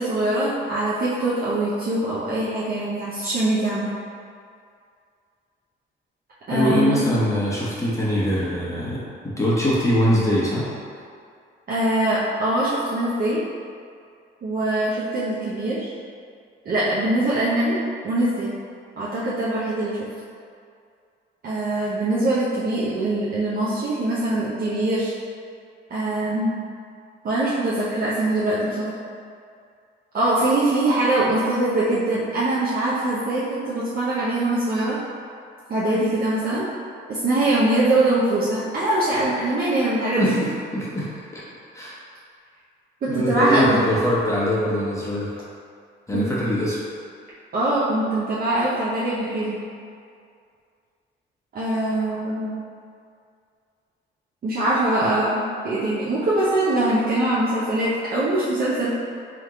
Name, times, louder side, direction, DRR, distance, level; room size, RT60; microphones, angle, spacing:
voice 1, 0.0-3.9 6.5-7.1 11.7-13.4 14.4-15.9 16.6-18.5 19.0-20.1 21.4-25.1 25.9-26.5 27.2-28.9 30.1-35.0 35.7-36.6 37.1-40.3 43.0-43.8 46.1-46.3 47.5-49.6 51.5-52.5 54.4-58.9, right 1 dB, 50° right, -9 dB, 0.8 m, -23 dB
voice 2, 6.5-10.7 40.2-41.4 41.7-42.0 43.1-45.3 46.1-46.8 55.0-55.1, equal, 15° left, -8 dB, 0.9 m, -23 dB
3.5 x 3.0 x 3.6 m, 2.3 s
cardioid pair, 90°, 20 cm